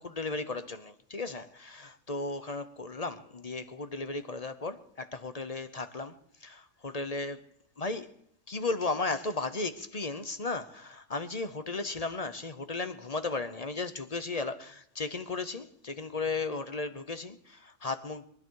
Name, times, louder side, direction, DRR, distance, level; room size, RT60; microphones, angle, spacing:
voice 1, 0.0-6.2 6.4-7.5 7.8-8.1 8.5-18.3, left 3 dB, 35° left, 0.9 m, -35 dB
23.0 x 12.0 x 4.7 m
omnidirectional pair, 1.3 m